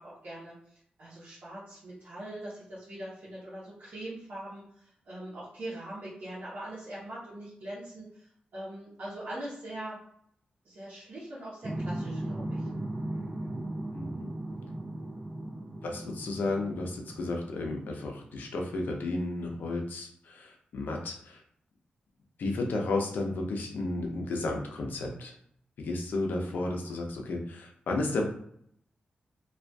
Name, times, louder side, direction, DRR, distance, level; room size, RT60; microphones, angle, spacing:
voice 1, 0.0-10.0 10.6-12.7, right 1 dB, 65° right, -9 dB, 0.9 m, -42 dB
sound 1, 11.6-18.2, right 1 dB, 30° right, 0.4 m, -37 dB
voice 2, 13.9-14.3 15.8-21.4 22.4-25.3 25.8-28.2, left 2 dB, 80° left, 1 dB, 0.5 m, -33 dB
2.5 x 2.3 x 2.2 m, 0.68 s
wide cardioid pair, 120°, 3 cm